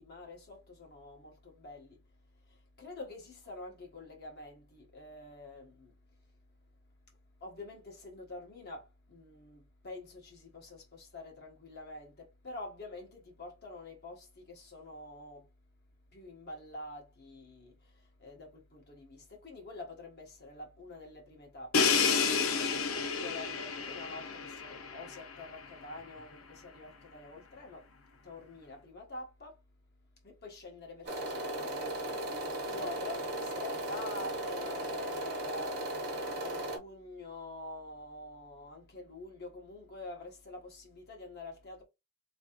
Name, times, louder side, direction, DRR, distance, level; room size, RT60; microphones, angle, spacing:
voice 1, 0.0-2.0 2.4-6.2 7.4-15.5 16.1-29.6 30.2-41.8, left 2 dB, 50° left, 1.4 m, -47 dB
Crash cymbal, 21.7-25.5, left 5 dB, 80° left, 0.7 m, -30 dB
sound 1, 31.1-36.8, right 1 dB, 50° right, 1.3 m, -36 dB
3.6 x 3.2 x 3.0 m
head